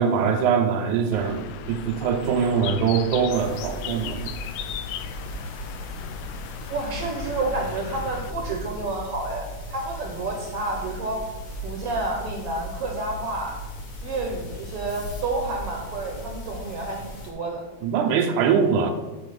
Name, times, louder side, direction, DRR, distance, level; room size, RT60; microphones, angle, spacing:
voice 1, 0.0-4.3 17.8-18.9, right 6 dB, 85° right, 4 dB, 2.1 m, -22 dB
Bird, 1.1-8.3, left 9 dB, 90° left, 1.4 m, -37 dB
sound 1, 3.3-17.3, equal, 50° left, 1.9 m, -37 dB
voice 2, 6.7-11.2 11.6-13.6 14.0-17.6, right 2 dB, 65° right, 2 dB, 1.6 m, -30 dB
8.0 x 4.4 x 6.7 m, 1.2 s
omnidirectional pair, 3.4 m